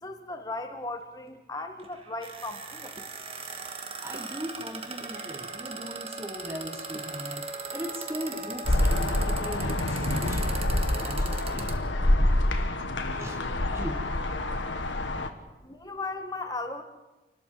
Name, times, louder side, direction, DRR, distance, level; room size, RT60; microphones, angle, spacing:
voice 1, 0.0-2.9 15.6-16.8, left 2 dB, 20° left, 6 dB, 1.6 m, -36 dB
sound 1, 1.8-11.8, right 4 dB, 30° right, 1.5 m, -39 dB
voice 2, 4.0-7.5 7.7-11.7 13.2-13.5 13.7-14.0, equal, 15° right, 5 dB, 1.2 m, -39 dB
Wind instrument woodwind instrument, 5.1-9.7, right 1 dB, 55° right, 2.9 m, -46 dB
sound 2, 8.6-15.3, left 1 dB, 80° left, 1.6 m, -26 dB
29.0 x 12.5 x 7.6 m, 1.1 s
head